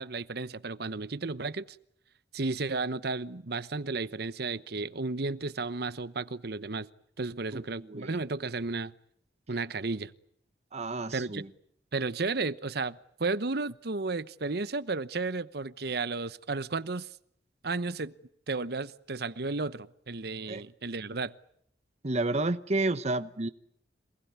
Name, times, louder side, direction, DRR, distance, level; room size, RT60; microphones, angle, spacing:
voice 1, 0.0-1.8 2.3-6.9 7.2-8.9 9.5-10.1 11.1-11.4 11.9-17.1 17.6-18.1 18.5-21.3, right 3 dB, 65° right, 1.0 m, -33 dB
voice 2, 7.5-8.1 10.7-11.5 20.5-20.6 22.0-23.5, right 2 dB, 40° right, 1.1 m, -31 dB
27.0 x 19.5 x 9.6 m
head